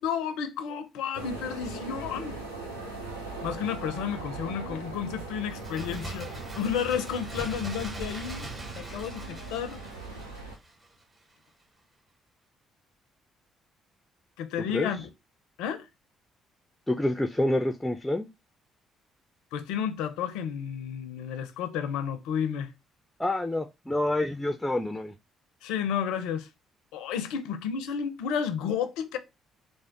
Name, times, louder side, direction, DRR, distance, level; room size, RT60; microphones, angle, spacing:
voice 1, 0.0-2.4 3.4-8.5 8.7-9.8 14.4-15.1 15.6-15.9 19.5-22.7 25.6-26.5 26.9-29.2, left 8 dB, 65° left, 0.4 m, -31 dB
sound 1, 1.1-10.6, right 3 dB, 90° right, 0.6 m, -40 dB
Bird, 5.5-11.0 11.3-11.4, right 2 dB, 30° right, 1.5 m, -41 dB
voice 2, 16.9-18.3 23.2-25.1, left 1 dB, 10° left, 0.4 m, -27 dB
3.4 x 2.0 x 3.8 m
figure-of-eight pair, 45°, 0 cm